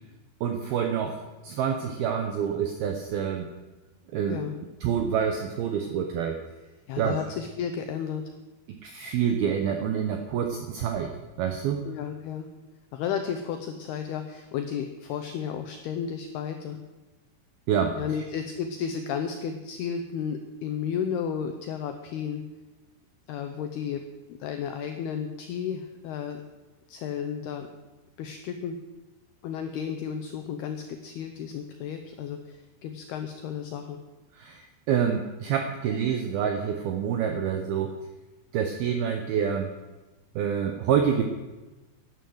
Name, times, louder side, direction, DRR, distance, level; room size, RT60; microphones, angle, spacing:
voice 1, 0.4-3.5 4.1-4.4 4.8-6.4 7.0-7.2 8.7-11.1 11.4-11.8 17.7-18.0 34.4-37.9 38.5-39.7 40.4-41.2, right 8 dB, 90° right, 6 dB, 2.1 m, -27 dB
voice 2, 6.9-8.2 11.8-12.5 12.9-16.8 18.0-22.4 23.3-24.0 24.4-26.4 26.9-27.7 28.2-28.8 29.4-34.0, left 7 dB, 90° left, 6 dB, 2.2 m, -33 dB
11.5 x 11.5 x 7.9 m, 1.1 s
omnidirectional pair, 5.7 m